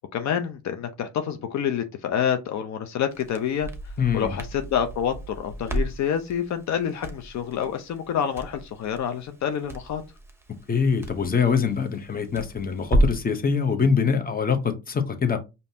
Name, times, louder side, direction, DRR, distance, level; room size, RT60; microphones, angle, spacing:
voice 1, 0.1-3.7 4.1-10.0, left 8 dB, 65° left, 0.7 m, -27 dB
Crackle, 3.1-13.3, right 1 dB, 10° right, 0.9 m, -32 dB
voice 2, 4.0-4.4 10.7-15.4, left 6 dB, 30° left, 0.9 m, -24 dB
5.2 x 2.7 x 2.8 m
cardioid pair, 90°, 30 cm